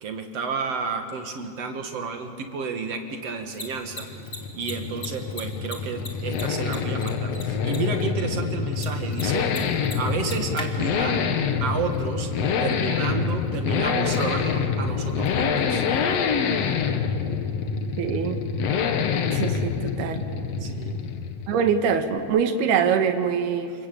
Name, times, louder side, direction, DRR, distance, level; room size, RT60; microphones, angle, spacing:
voice 1, 0.0-4.1 4.5-9.5 9.9-12.3 12.6-15.9 20.6-21.0, right 5 dB, 50° right, 5 dB, 2.1 m, -31 dB
Mechanisms, 3.3-16.9, left 2 dB, 25° left, 2.0 m, -44 dB
sound 1, 3.7-21.7, left 6 dB, 65° left, 1.6 m, -26 dB
voice 2, 18.0-18.4 19.3-20.3 21.5-23.7, right 7 dB, 75° right, 7 dB, 3.4 m, -24 dB
29.0 x 21.5 x 8.7 m, 2.3 s
omnidirectional pair, 4.8 m